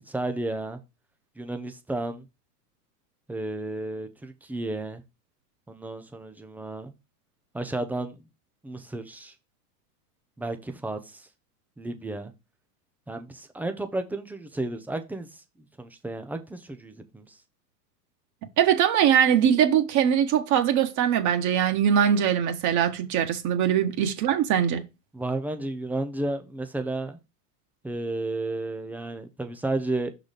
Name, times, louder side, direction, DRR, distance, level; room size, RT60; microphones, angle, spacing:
voice 1, 0.1-0.8 1.4-2.2 3.3-5.0 5.7-6.9 7.5-8.2 8.6-9.3 10.4-11.3 11.8-12.3 13.1-15.4 15.8-17.4 25.1-27.2 27.8-30.1, right 2 dB, 5° right, 0.4 m, -32 dB
voice 2, 18.6-24.8, right 9 dB, 40° right, 1.2 m, -22 dB
5.8 x 4.0 x 5.0 m
hypercardioid pair, 125°, 47 cm